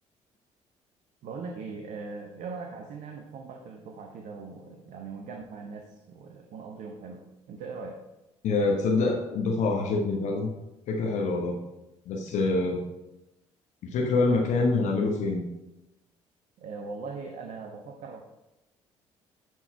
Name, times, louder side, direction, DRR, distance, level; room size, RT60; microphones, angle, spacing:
voice 1, 1.2-8.0 16.6-18.2, right 4 dB, 50° right, 4 dB, 0.9 m, -40 dB
voice 2, 8.4-10.5 10.9-11.6 12.1-12.8 13.8-15.4, left 3 dB, 50° left, 0 dB, 1.1 m, -25 dB
11.0 x 4.5 x 4.6 m, 0.97 s
figure-of-eight pair, 50°, 16 cm